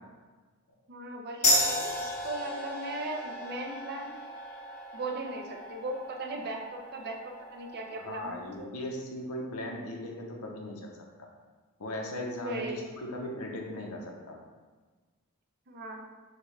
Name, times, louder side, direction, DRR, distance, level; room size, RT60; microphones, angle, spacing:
voice 1, 0.9-4.1 4.9-8.7 12.3-12.8 15.7-16.0, right 2 dB, 45° right, 1 dB, 0.6 m, -38 dB
sound 1, 1.4-8.5, left 1 dB, 30° left, 0.8 m, -33 dB
voice 2, 8.0-11.3 11.8-14.4, left 1 dB, 85° left, 1 dB, 0.8 m, -38 dB
6.4 x 2.3 x 3.2 m, 1.3 s
head